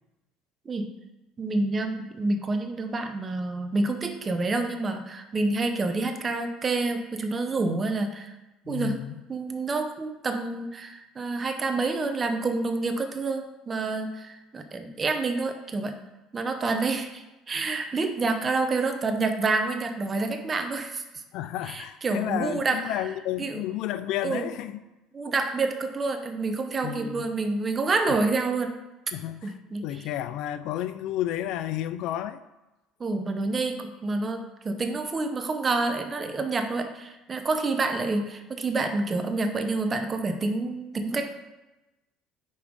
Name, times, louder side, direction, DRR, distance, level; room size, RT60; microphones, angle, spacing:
voice 1, 1.4-8.3 8.7-9.0 9.3-15.9 16.3-21.0 21.7-22.8 23.4-23.6 24.2-24.5 25.1-28.7 29.4-30.0 33.0-41.3, right 3 dB, 30° right, 0.8 m, -28 dB
voice 2, 8.7-9.2 21.3-24.8 26.8-27.3 29.1-29.5 29.8-32.4, left 12 dB, 70° left, 0.4 m, -31 dB
5.4 x 4.6 x 5.2 m
supercardioid pair, 100°, 0 cm